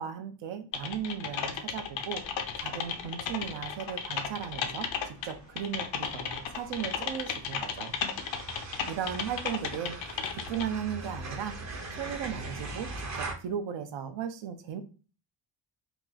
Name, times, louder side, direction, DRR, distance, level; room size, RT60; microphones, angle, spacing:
voice 1, 0.0-2.2 2.6-7.9 8.9-10.0 10.3-11.6 12.0-14.8, right 8 dB, 70° right, 8 dB, 0.7 m, -36 dB
Typing, 0.7-10.6, left 7 dB, 80° left, 0.6 m, -35 dB
sound 1, 2.2-13.3, right 2 dB, 35° right, 0.7 m, -43 dB
3.0 x 2.3 x 3.8 m, 0.36 s
cardioid pair, 125°, 46 cm